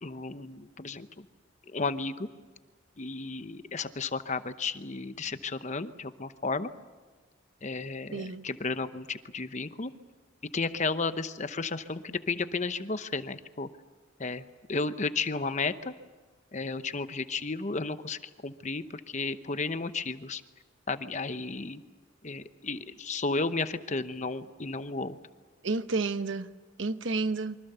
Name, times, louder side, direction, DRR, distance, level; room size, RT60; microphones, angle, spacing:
voice 1, 0.0-1.1 1.7-2.3 3.0-6.7 7.6-9.9 10.5-13.7 14.2-15.9 16.5-20.4 20.9-21.8 22.2-25.2, left 3 dB, 35° left, 0.9 m, -33 dB
voice 2, 8.1-8.5 25.6-26.5 26.8-27.6, right 3 dB, 65° right, 1.0 m, -30 dB
27.0 x 24.5 x 6.9 m
head